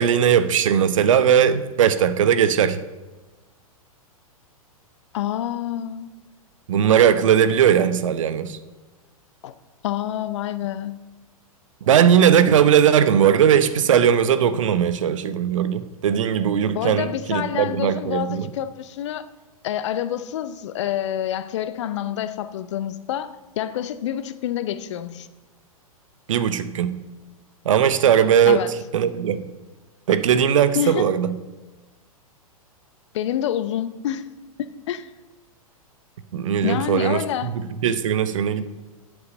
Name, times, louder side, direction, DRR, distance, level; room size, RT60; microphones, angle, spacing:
voice 1, 0.0-2.8 6.7-8.6 11.9-18.5 26.3-27.0 27.6-28.6 28.9-29.4 30.1-31.3 36.3-38.6, right 8 dB, 60° right, 0.8 m, -19 dB
voice 2, 5.1-6.1 9.4-9.5 9.8-11.0 16.7-19.3 19.6-25.3 28.5-28.7 30.7-31.1 33.1-34.3 34.9-35.1 36.6-37.5, left 11 dB, 50° left, 0.7 m, -27 dB
8.6 x 8.0 x 6.4 m
figure-of-eight pair, 105°, 19 cm